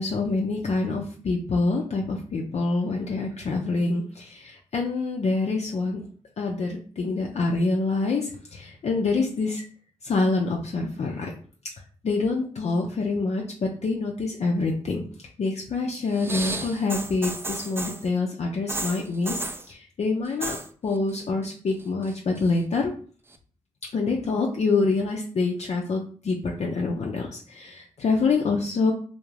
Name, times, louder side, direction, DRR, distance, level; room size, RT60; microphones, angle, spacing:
voice 1, 0.0-6.0 6.4-9.6 10.0-11.3 12.0-15.0 15.4-19.4 19.7-20.6 20.8-22.9 23.9-28.9, left 3 dB, 55° left, -1 dB, 0.5 m, -26 dB
sound 1, 16.1-18.1 18.7-19.7 20.2-20.7 20.9-21.4 21.8-22.6 23.3-23.4, right 2 dB, 15° right, 0.4 m, -33 dB
2.4 x 2.1 x 3.1 m, 0.43 s
supercardioid pair, 40°, 13 cm